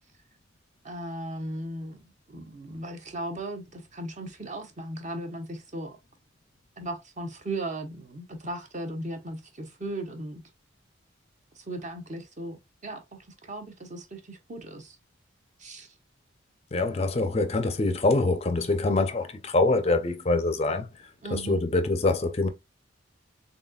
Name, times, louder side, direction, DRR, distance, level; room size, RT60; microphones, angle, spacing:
voice 1, 0.8-6.0 6.8-10.4 11.6-12.6 12.8-15.0 15.6-15.9 21.2-21.6, right 1 dB, 35° right, 0.8 m, -37 dB
voice 2, 16.7-22.5, left 2 dB, 30° left, 0.4 m, -25 dB
4.0 x 3.7 x 2.3 m
head